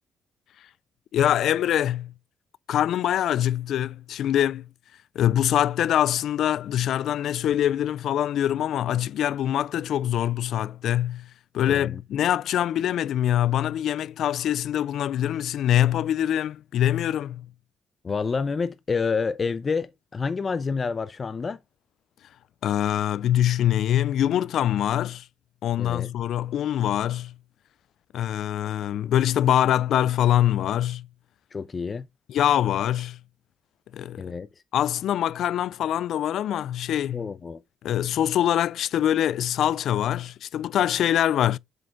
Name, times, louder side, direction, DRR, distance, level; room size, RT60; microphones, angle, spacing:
voice 1, 1.1-2.1 2.7-4.7 5.2-11.3 11.5-17.5 22.6-25.3 25.6-27.3 28.1-31.1 32.3-33.2 33.9-34.3 34.7-37.3 37.8-41.6, left 11 dB, 75° left, 0.3 m, -24 dB
voice 2, 11.7-12.0 18.0-21.6 25.8-26.1 31.5-32.1 34.2-34.5 37.1-37.6, left 5 dB, 35° left, 0.6 m, -28 dB
7.7 x 5.1 x 3.5 m
cardioid pair, 90°, 0 cm